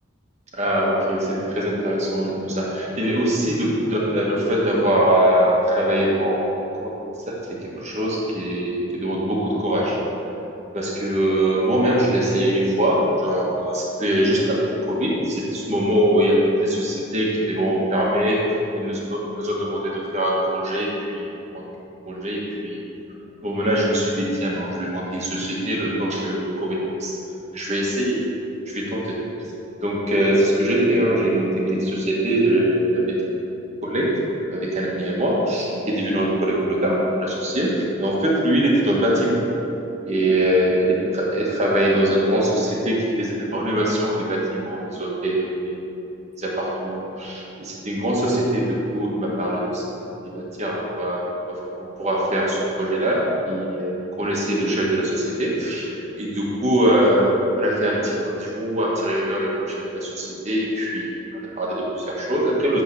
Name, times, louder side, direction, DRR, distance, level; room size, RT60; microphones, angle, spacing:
voice 1, 0.5-6.9 7.3-10.0 10.7-21.3 21.5-21.6 22.1-22.8 23.4-27.2 27.5-28.2 28.7-29.2 29.8-33.4 33.8-34.1 34.5-35.7 35.9-39.4 40.0-40.9 41.3-45.7 46.4-50.1 50.3-62.8, right 1 dB, 35° right, -4 dB, 1.4 m, -22 dB
11.0 x 3.8 x 6.9 m, 2.8 s
head